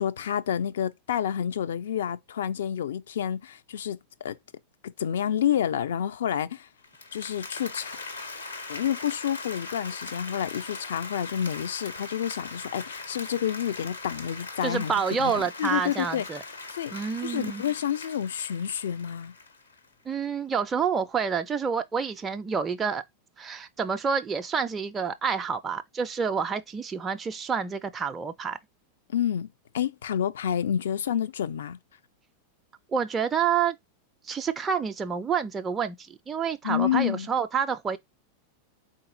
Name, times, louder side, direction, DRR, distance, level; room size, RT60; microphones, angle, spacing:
voice 1, 0.0-4.4 5.0-6.7 7.1-8.0 8.7-14.9 15.2-16.2 16.7-16.9 17.2-19.3 29.1-29.5 29.7-31.8 36.6-37.3, left 9 dB, 60° left, 0.4 m, -29 dB
Applause, 6.8-19.9, left 3 dB, 75° left, 0.9 m, -40 dB
voice 2, 14.6-16.4 16.9-17.6 20.1-23.0 23.4-28.6 32.9-33.8 34.3-38.0, right 6 dB, 20° right, 0.4 m, -28 dB
4.0 x 3.8 x 2.5 m
figure-of-eight pair, 90°, 0 cm